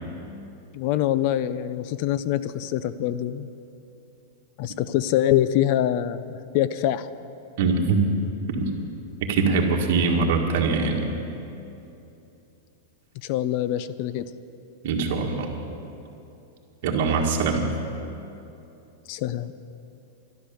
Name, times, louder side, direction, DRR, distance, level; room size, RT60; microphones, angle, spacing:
voice 1, 0.7-3.5 4.6-7.1 13.2-14.2 19.1-19.5, left 12 dB, 45° left, 15 dB, 0.5 m, -24 dB
voice 2, 7.6-8.1 9.2-11.1 14.8-15.5 16.8-17.6, right 4 dB, 55° right, 0 dB, 1.8 m, -22 dB
12.0 x 11.5 x 7.0 m, 2.8 s
supercardioid pair, 155°, 0 cm